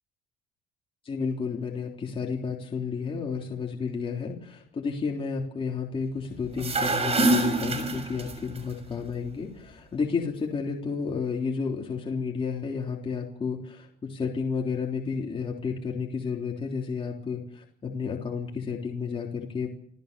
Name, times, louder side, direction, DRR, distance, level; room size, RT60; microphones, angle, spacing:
voice 1, 1.0-19.7, left 5 dB, 30° left, -1 dB, 3.5 m, -31 dB
sound 1, 6.4-8.6, right 2 dB, 35° right, 6.1 m, -25 dB
28.5 x 15.0 x 6.9 m, 0.69 s
cardioid pair, 110°, 17 cm